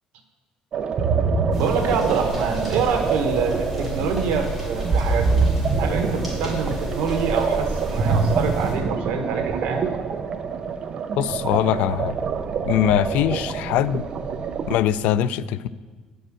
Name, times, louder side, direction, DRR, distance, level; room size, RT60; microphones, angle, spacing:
sound 1, 0.7-14.8, right 5 dB, 40° right, 0.6 m, -25 dB
sound 2, 1.5-8.7, equal, ahead, 3.0 m, -31 dB
voice 1, 1.6-5.5 5.8-9.8, right 5 dB, 90° right, 5 dB, 1.3 m, -26 dB
voice 2, 11.2-12.2 12.7-14.1 14.7-15.7, left 11 dB, 85° left, 16 dB, 0.3 m, -22 dB
9.6 x 5.3 x 7.5 m, 1.4 s
cardioid pair, 165°, 2 cm